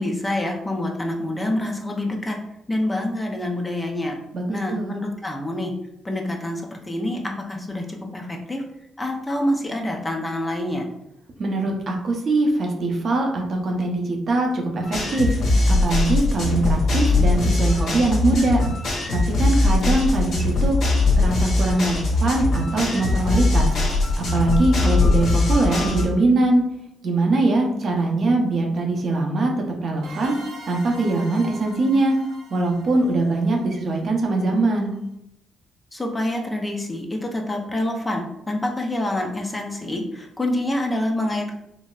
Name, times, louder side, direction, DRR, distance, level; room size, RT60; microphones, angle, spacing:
voice 1, 0.0-2.4 2.7-4.2 4.5-5.7 6.0-8.6 9.0-10.9 35.9-41.5, left 1 dB, 15° left, 1 dB, 0.5 m, -26 dB
voice 2, 4.3-4.9 11.4-15.3 15.7-18.6 19.1-20.8 21.2-23.7 24.3-26.6 27.0-30.4 30.7-32.2 32.5-34.9, right 2 dB, 50° right, 1 dB, 0.7 m, -22 dB
sound 1, 14.8-26.1, left 2 dB, 60° left, 1.3 m, -20 dB
sound 2, 30.0-34.5, right 2 dB, 85° right, 0.8 m, -43 dB
3.9 x 2.0 x 2.3 m, 0.80 s
cardioid pair, 90°, 0 cm